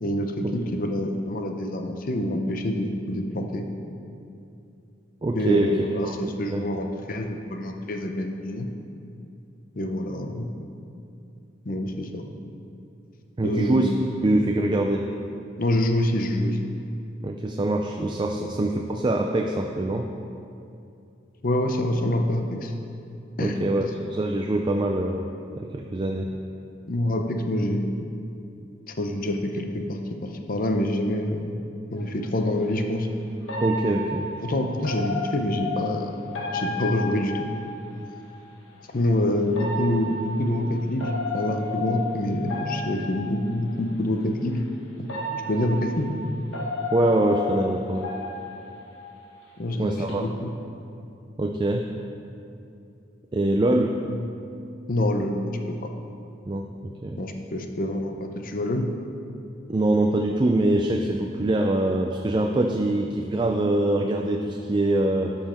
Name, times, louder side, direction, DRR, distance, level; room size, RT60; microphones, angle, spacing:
voice 1, 0.0-3.7 5.3-8.7 9.8-10.5 11.7-12.2 13.4-13.9 15.6-16.6 18.4-18.5 21.4-22.7 23.4-23.9 26.9-27.8 28.9-31.5 31.9-33.1 34.4-36.2 36.5-37.5 38.9-44.7 45.0-45.1 45.5-46.1 49.6-50.5 54.0-54.2 54.9-55.5 57.2-58.9, left 1 dB, 45° left, 4 dB, 0.7 m, -26 dB
voice 2, 5.2-5.8 6.0-6.7 13.4-13.9 14.2-15.1 17.2-20.1 23.4-25.2 25.6-26.3 33.6-34.2 46.9-48.1 49.8-50.2 51.4-51.9 53.3-53.9 56.4-57.2 59.7-65.4, right 1 dB, 25° right, 2 dB, 0.4 m, -24 dB
sound 1, 32.0-32.1 33.5-38.2 39.5-43.7 44.5-44.6 45.1-49.5 49.8-50.1, left 2 dB, 85° left, 1.2 m, -33 dB
12.0 x 5.6 x 4.4 m, 2.6 s
head